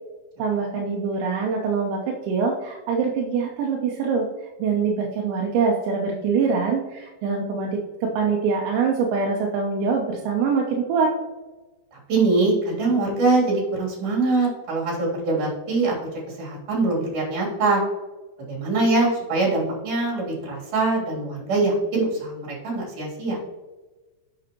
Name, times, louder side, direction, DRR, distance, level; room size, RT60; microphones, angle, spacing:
voice 1, 0.4-4.3 4.6-11.1, right 5 dB, 80° right, 0 dB, 3.1 m, -24 dB
voice 2, 12.1-15.9 16.4-17.8 18.5-23.4, right 3 dB, 50° right, -4 dB, 4.4 m, -23 dB
10.0 x 7.1 x 3.0 m, 1.2 s
omnidirectional pair, 5.1 m